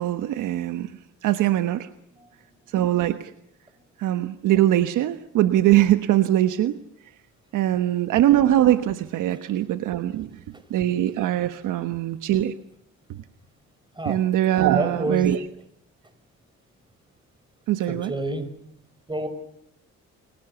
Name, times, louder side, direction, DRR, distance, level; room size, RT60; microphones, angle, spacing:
voice 1, 0.0-1.9 2.7-3.3 4.0-6.8 7.5-10.4 10.7-12.5 13.1-13.2 14.0-15.4 17.7-18.1, right 13 dB, 85° right, 9 dB, 1.3 m, -22 dB
voice 2, 14.6-15.3 17.9-18.5 19.1-19.3, right 2 dB, 15° right, 10 dB, 6.3 m, -29 dB
29.5 x 23.5 x 7.1 m, 0.77 s
cardioid pair, 90°, 30 cm